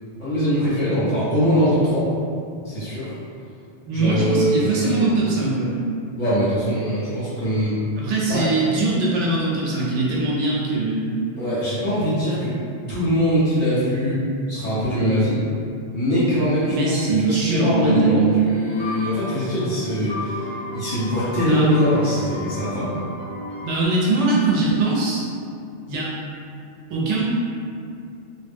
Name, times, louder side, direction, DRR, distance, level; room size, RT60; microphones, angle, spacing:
voice 1, 0.2-2.1 2.6-3.1 3.9-5.0 6.2-7.8 8.2-8.5 11.4-12.5 12.9-14.2 14.5-15.4 15.9-23.0, equal, 35° left, -12 dB, 1.0 m, -22 dB
voice 2, 3.9-5.8 8.0-11.1 16.7-18.5 21.4-21.6 23.6-25.3 25.9-26.1 26.9-27.2, right 3 dB, 85° right, -5 dB, 1.0 m, -21 dB
sound 1, 18.7-23.9, left 1 dB, 65° left, 0.7 m, -33 dB
2.3 x 2.1 x 3.4 m, 2.4 s
omnidirectional pair, 1.2 m